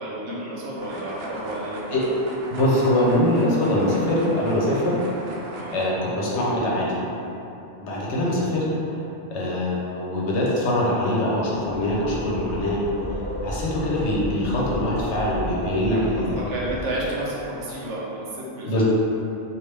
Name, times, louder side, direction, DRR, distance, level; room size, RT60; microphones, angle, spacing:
voice 1, 0.0-1.8 5.6-5.8 15.9-18.8, right 1 dB, 80° right, -6 dB, 1.0 m, -31 dB
sound 1, 0.7-5.9, right 2 dB, 65° right, 0.7 m, -38 dB
voice 2, 2.5-5.0 5.7-7.2 7.8-8.6 9.3-16.4 18.7-18.8, left 1 dB, 70° left, -5 dB, 1.0 m, -23 dB
sound 2, 11.5-17.4, equal, 15° left, 0.6 m, -35 dB
3.0 x 2.5 x 3.3 m, 2.9 s
omnidirectional pair, 1.2 m